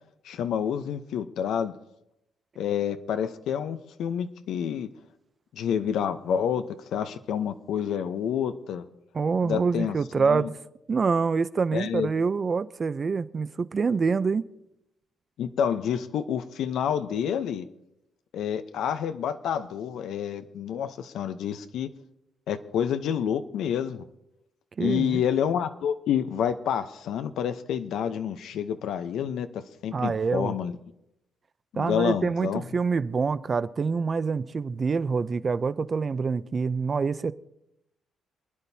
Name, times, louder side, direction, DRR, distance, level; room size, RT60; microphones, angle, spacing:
voice 1, 0.2-1.7 2.6-4.9 5.5-8.8 9.4-10.5 11.7-12.1 15.4-17.7 18.3-21.9 22.5-24.0 24.8-30.8 31.7-32.6, left 8 dB, 75° left, 0.8 m, -28 dB
voice 2, 9.1-10.6 10.9-14.4 24.8-25.2 29.9-30.6 31.7-37.3, right 5 dB, 40° right, 0.5 m, -26 dB
27.5 x 10.0 x 2.8 m
cardioid pair, 90°, 0 cm